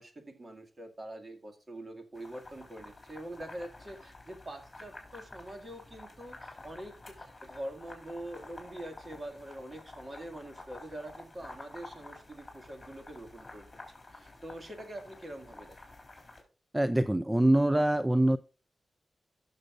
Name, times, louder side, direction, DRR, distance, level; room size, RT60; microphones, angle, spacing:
voice 1, 0.0-13.7 14.1-15.8, right 1 dB, 35° right, 5 dB, 2.0 m, -44 dB
sound 1, 2.1-16.4, left 2 dB, 25° left, 3.6 m, -50 dB
voice 2, 16.7-18.4, right 1 dB, 10° right, 13 dB, 0.4 m, -24 dB
16.5 x 6.7 x 2.5 m, 0.35 s
wide cardioid pair, 100°, 0 cm